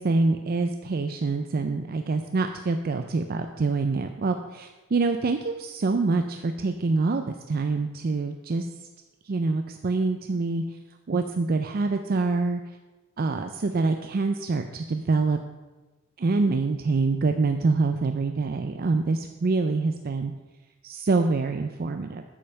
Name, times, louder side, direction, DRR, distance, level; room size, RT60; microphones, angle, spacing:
voice 1, 0.0-8.7 9.2-10.6 11.1-12.6 13.2-15.4 16.2-20.3 20.8-22.2, right 3 dB, 45° right, 6 dB, 0.4 m, -25 dB
8.6 x 5.5 x 6.5 m, 1.2 s
head